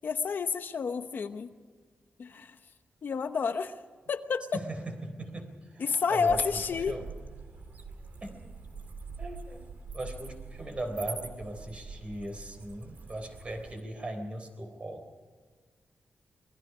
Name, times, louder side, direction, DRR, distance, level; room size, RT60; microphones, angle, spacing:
voice 1, 0.0-1.5 2.2-2.6 3.0-3.8 4.1-4.5 5.8-7.0, left 5 dB, 55° left, 8 dB, 1.0 m, -30 dB
voice 2, 4.5-6.6 6.9-7.0 8.2-8.5 9.2-9.7 9.9-15.2, right 1 dB, 30° right, 5 dB, 3.8 m, -39 dB
sound 1, 6.3-13.8, right 4 dB, 45° right, 2.1 m, -44 dB
27.0 x 21.0 x 5.0 m, 1.5 s
wide cardioid pair, 145°, 4 cm